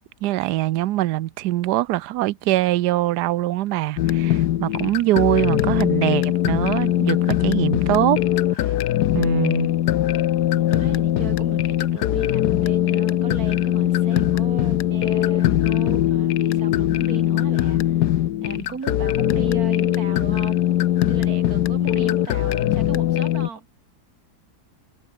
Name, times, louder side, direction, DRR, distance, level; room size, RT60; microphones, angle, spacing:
voice 1, 0.2-8.2 8.5-8.7 9.1-9.7, right 15 dB, 75° right, 1.2 m, -23 dB
sound 1, 4.0-23.5, left 13 dB, 75° left, 1.3 m, -21 dB
voice 2, 10.5-17.9 18.4-20.6 21.0-23.7, right 5 dB, 60° right, 2.6 m, -36 dB
omnidirectional pair, 1.8 m